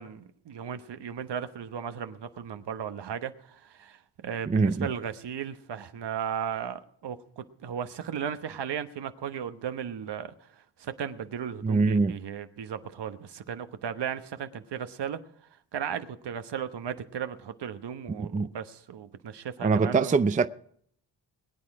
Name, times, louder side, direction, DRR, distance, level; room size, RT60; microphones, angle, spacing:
voice 1, 0.0-15.2 15.7-20.2, right 8 dB, 65° right, 1.1 m, -36 dB
voice 2, 4.5-4.9 11.6-12.1 18.2-18.5 19.6-20.5, right 4 dB, 20° right, 0.5 m, -23 dB
21.5 x 8.9 x 4.8 m
cardioid pair, 65°, 45 cm